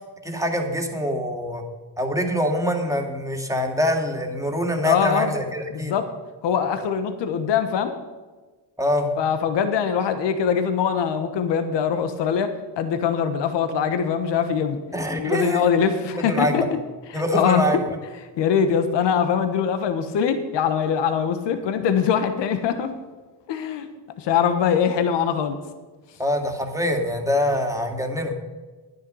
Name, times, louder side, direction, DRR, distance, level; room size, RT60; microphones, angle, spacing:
voice 1, 0.2-1.6 2.0-5.9 8.8-9.1 14.9-15.6 16.2-16.6 17.1-18.0 26.2-28.3, equal, 5° right, 3 dB, 2.2 m, -24 dB
voice 2, 4.8-5.3 5.7-6.1 6.4-7.9 9.2-14.8 15.1-16.8 17.1-17.6 18.4-22.9 23.5-23.9 24.2-25.6, left 7 dB, 75° left, 9 dB, 1.3 m, -22 dB
10.5 x 9.6 x 5.5 m, 1.3 s
cardioid pair, 80°, 42 cm